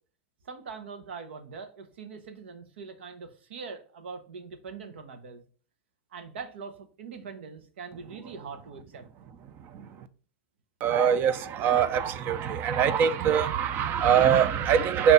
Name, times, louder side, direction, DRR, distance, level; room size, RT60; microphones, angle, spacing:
voice 1, 0.4-5.4 6.1-9.1, right 5 dB, 85° right, 1.1 m, -42 dB
voice 2, 10.8-15.1, right 8 dB, 35° right, 0.6 m, -23 dB
6.4 x 2.9 x 5.2 m
supercardioid pair, 135°, 6 cm